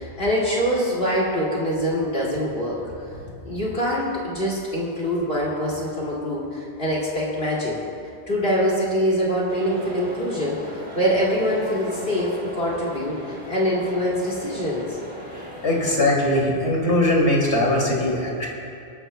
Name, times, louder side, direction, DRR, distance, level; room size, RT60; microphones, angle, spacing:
voice 1, 0.0-2.8 3.4-7.8 8.3-10.6 10.9-15.0, equal, 55° left, -5 dB, 2.7 m, -24 dB
sound 1, 9.5-16.0, equal, 10° right, 3.4 m, -37 dB
voice 2, 15.6-18.5, left 1 dB, 80° left, -3 dB, 3.0 m, -20 dB
25.5 x 12.5 x 2.3 m, 2.5 s
omnidirectional pair, 1.1 m